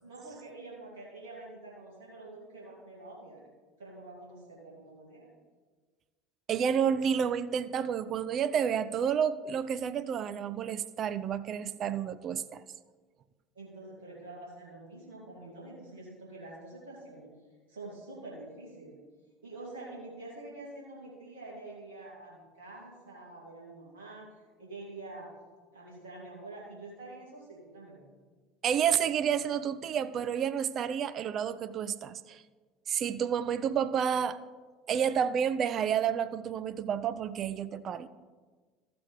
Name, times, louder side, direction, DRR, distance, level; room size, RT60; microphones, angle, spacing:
voice 1, 0.0-3.4 3.8-5.3 13.5-17.3 17.7-19.0 19.4-24.3 24.6-25.3 25.7-28.0, right 2 dB, 75° right, -5 dB, 2.4 m, -46 dB
voice 2, 6.5-12.6 28.6-32.4 32.9-34.4 34.9-38.1, right 8 dB, 45° right, 13 dB, 0.5 m, -30 dB
14.0 x 6.9 x 3.3 m, 1.4 s
hypercardioid pair, 70°, 0 cm